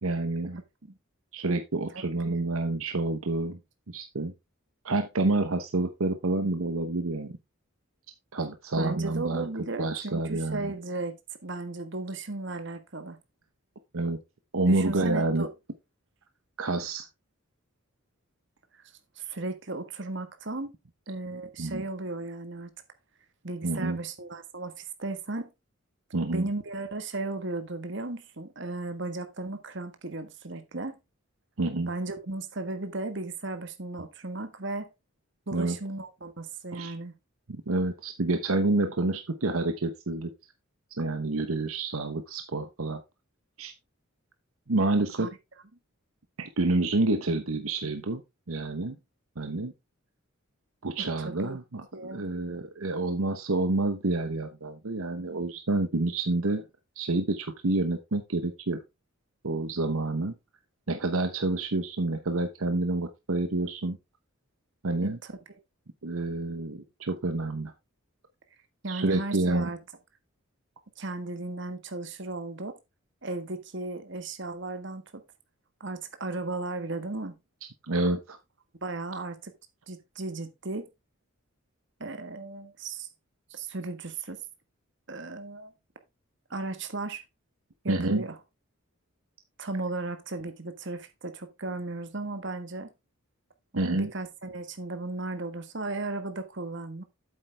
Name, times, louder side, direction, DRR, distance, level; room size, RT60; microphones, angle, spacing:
voice 1, 0.0-0.6 1.3-3.6 3.9-4.3 4.8-7.3 8.3-9.5 9.8-10.7 13.9-14.2 14.5-15.5 16.6-17.1 21.6-21.8 23.6-24.0 26.1-26.5 31.6-31.9 35.5-35.8 36.7-36.9 37.5-40.3 41.0-43.0 43.6-43.7 44.7-45.3 46.4-48.2 48.5-49.0 49.4-49.7 50.8-56.6 57.0-58.8 59.4-60.3 60.9-64.0 64.8-65.2 66.0-67.7 68.9-69.7 77.6-78.4 87.9-88.2 93.7-94.1, right 2 dB, 80° right, 1.0 m, -28 dB
voice 2, 1.9-2.4 8.8-11.2 11.4-13.2 14.7-15.5 19.2-20.7 21.1-22.7 23.4-25.5 26.3-31.0 31.9-34.9 35.5-37.1 45.2-45.3 51.2-51.6 51.9-52.3 65.0-65.1 68.8-69.8 71.0-72.7 73.2-75.0 75.8-77.3 78.8-79.5 79.9-80.9 82.0-83.1 83.5-84.4 85.1-85.7 86.5-87.2 87.8-88.4 89.6-92.9 93.7-97.0, right 2 dB, 55° right, 1.5 m, -35 dB
8.6 x 7.9 x 3.4 m
head